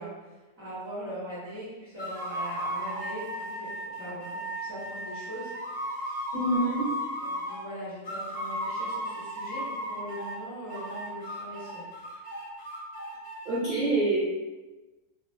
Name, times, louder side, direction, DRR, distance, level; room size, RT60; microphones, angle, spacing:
voice 1, 0.0-6.3 6.6-6.7 7.2-12.3, equal, 10° right, -9 dB, 1.1 m, -41 dB
sound 1, 2.0-7.7 8.0-10.4 10.7-13.6, equal, 40° left, 0.6 m, -35 dB
voice 2, 6.3-6.9 13.4-14.2, right 2 dB, 45° right, -9 dB, 0.6 m, -26 dB
2.4 x 2.3 x 3.8 m, 1.2 s
omnidirectional pair, 1.7 m